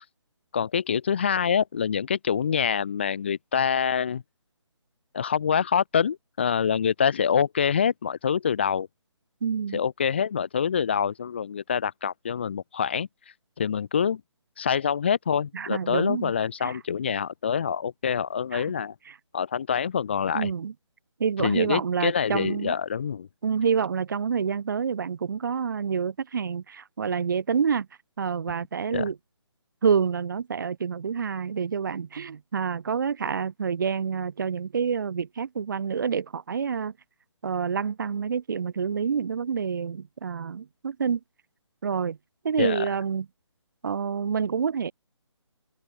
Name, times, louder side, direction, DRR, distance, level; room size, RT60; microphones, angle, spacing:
voice 1, 0.5-4.2 5.1-8.9 9.7-13.1 13.6-14.2 14.6-18.9 19.3-20.5 21.4-23.3 28.9-29.1 42.6-42.9, left 7 dB, 20° left, 0.4 m, -26 dB
voice 2, 9.4-9.8 15.5-16.3 16.6-16.8 18.5-18.6 19.1-19.2 20.3-20.7 21.2-22.7 23.4-27.9 28.2-29.2 29.8-36.9 37.4-41.2 41.8-42.2 42.4-43.3 43.8-44.9, right 6 dB, 40° right, 0.6 m, -27 dB
open air
figure-of-eight pair, 150°, 16 cm